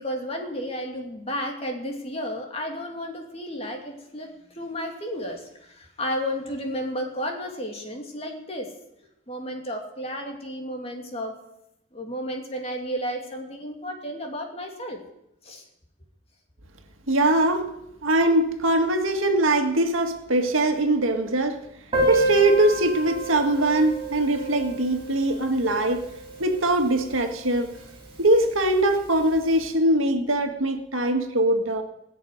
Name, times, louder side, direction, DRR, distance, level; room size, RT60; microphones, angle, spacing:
voice 1, 0.0-8.7 9.3-11.4 11.9-15.0 15.4-15.6, equal, 30° left, 2 dB, 2.6 m, -32 dB
voice 2, 17.1-17.7 18.0-21.6 22.1-26.0 26.4-27.7 28.2-31.8, right 1 dB, 90° right, 5 dB, 1.9 m, -22 dB
Piano, 21.9-27.3 27.5-27.6 27.9-28.0 28.3-28.4 29.2-29.4, right 2 dB, 25° right, 4.7 m, -29 dB
19.5 x 6.8 x 9.4 m, 0.85 s
head